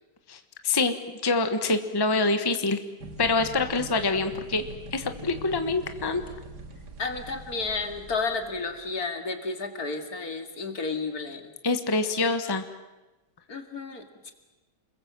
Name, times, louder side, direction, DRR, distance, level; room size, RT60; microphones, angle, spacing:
voice 1, 0.6-2.8 3.2-4.6 4.9-6.2 11.6-12.6, left 3 dB, 15° left, 8 dB, 1.2 m, -25 dB
sound 1, 3.0-8.9, right 2 dB, 75° right, 2.5 m, -43 dB
voice 2, 7.0-11.5 13.5-14.3, left 4 dB, 60° left, 6 dB, 2.7 m, -32 dB
29.0 x 22.0 x 7.6 m, 1.1 s
omnidirectional pair, 1.8 m